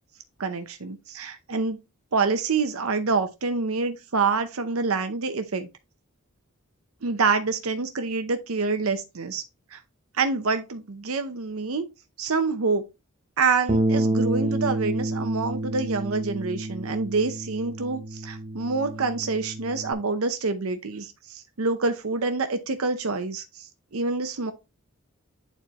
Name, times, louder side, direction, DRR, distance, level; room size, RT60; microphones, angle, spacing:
voice 1, 0.4-1.8 2.1-5.7 7.0-9.4 9.7-9.8 10.1-11.9 12.2-12.9 13.4-24.5, right 4 dB, 85° right, 0.7 m, -27 dB
Bass guitar, 13.7-19.9, right 1 dB, 25° right, 0.9 m, -29 dB
8.9 x 4.3 x 3.0 m
head